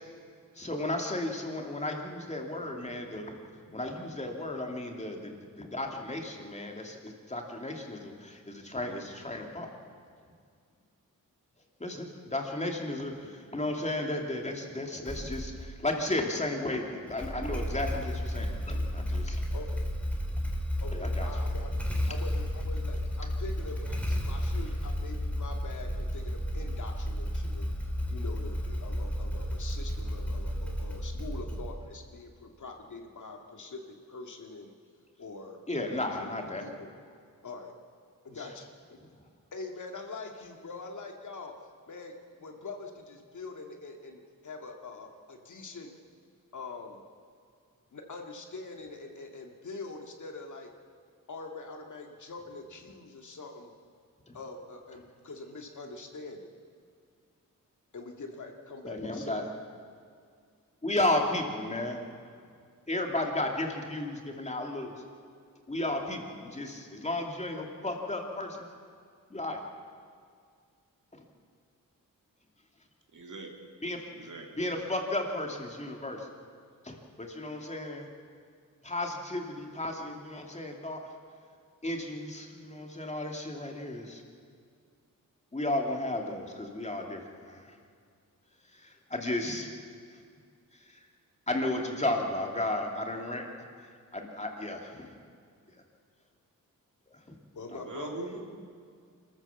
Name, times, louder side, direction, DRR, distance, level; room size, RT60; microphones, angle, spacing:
voice 1, 0.5-3.4 3.7-9.7 11.8-19.4 20.9-21.3 35.7-36.6 54.3-54.4 58.8-59.4 60.8-62.0 62.9-64.9 65.7-68.7 69.3-69.6 71.1-71.2 73.8-74.3 74.6-76.3 76.8-78.1 78.8-81.0 81.8-84.2 85.5-87.8 88.7-89.7 90.7-91.0 91.5-93.7 94.1-95.1 97.3-97.4, left 1 dB, 20° left, 2 dB, 2.6 m, -34 dB
Motorcycle / Engine starting, 15.0-15.7 17.1-32.0, equal, 5° left, 3.0 m, -32 dB
voice 2, 19.5-19.9 20.8-21.7 22.1-27.8 28.1-34.7 35.2-36.3 36.6-36.9 37.4-37.7 38.2-39.0 39.5-41.5 41.9-42.1 42.4-45.9 46.5-47.0 47.9-50.7 51.3-53.7 54.3-56.6 57.9-59.5 97.5-98.3, left 3 dB, 60° left, 3 dB, 2.2 m, -44 dB
voice 3, 73.1-73.7 74.1-74.5 97.8-98.5, right 3 dB, 65° right, 1 dB, 3.1 m, -42 dB
26.0 x 14.5 x 7.2 m, 2.2 s
wide cardioid pair, 115°, 33 cm